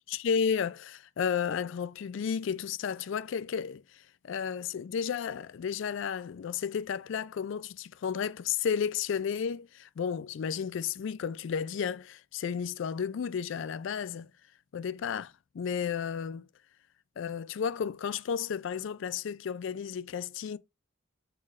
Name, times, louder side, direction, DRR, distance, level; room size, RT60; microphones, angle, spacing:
voice 1, 0.1-3.8 4.2-14.3 14.7-16.4 17.2-20.6, left 7 dB, 60° left, 0.3 m, -32 dB
4.2 x 4.1 x 2.4 m
head